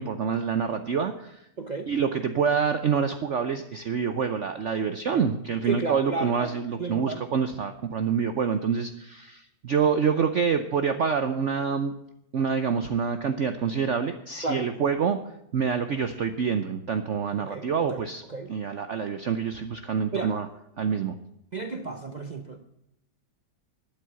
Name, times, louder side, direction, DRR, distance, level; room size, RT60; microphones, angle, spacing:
voice 1, 0.0-1.4 1.9-11.9 12.3-15.2 15.5-18.2 18.5-20.5 20.8-21.1, right 6 dB, 60° right, 9 dB, 0.8 m, -26 dB
voice 2, 1.6-1.9 5.1-5.2 5.7-6.5 6.8-7.2 14.4-14.7 17.4-18.0 18.3-18.5 20.1-20.4 21.5-22.6, right 3 dB, 90° right, 7 dB, 0.3 m, -33 dB
11.5 x 9.1 x 8.2 m, 0.81 s
omnidirectional pair, 2.0 m